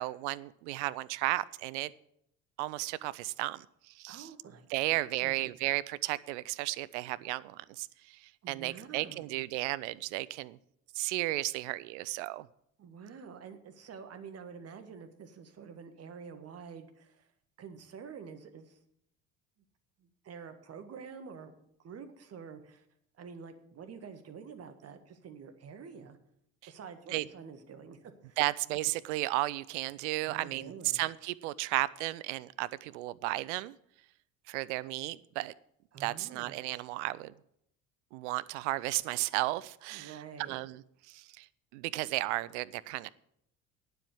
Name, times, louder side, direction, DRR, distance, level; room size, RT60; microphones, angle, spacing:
voice 1, 0.0-1.9 2.6-4.3 4.7-10.6 10.9-12.5 27.1-27.2 28.4-33.8 34.5-35.5 36.0-37.3 38.1-40.2 40.5-40.8 41.1-41.5 41.7-43.1, right 18 dB, 65° right, 18 dB, 0.6 m, -34 dB
voice 2, 4.1-5.4 8.4-9.3 12.8-17.3 17.6-18.8 20.0-21.6 21.8-22.9 23.2-26.2 26.7-28.4 30.2-31.0 35.9-36.5 39.9-40.6, right 6 dB, 40° right, 8 dB, 1.5 m, -48 dB
9.0 x 7.7 x 8.5 m, 0.75 s
figure-of-eight pair, 60°, 38 cm